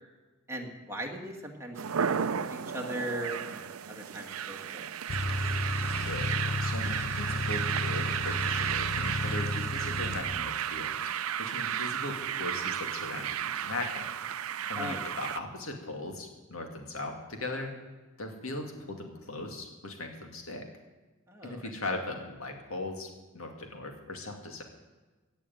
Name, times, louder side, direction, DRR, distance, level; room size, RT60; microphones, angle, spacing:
voice 1, 0.5-4.9 14.8-15.0 21.3-21.7, right 1 dB, 15° right, 0 dB, 1.9 m, -39 dB
sound 1, 1.7-15.4, right 9 dB, 75° right, 0.5 m, -33 dB
sound 2, 5.1-10.2, left 2 dB, 45° left, 1.0 m, -33 dB
voice 2, 5.9-6.3 6.6-11.1 11.4-14.1 14.7-17.7 18.2-20.7 21.4-24.6, left 2 dB, 70° left, 3 dB, 2.3 m, -38 dB
16.5 x 6.9 x 9.2 m, 1.2 s
head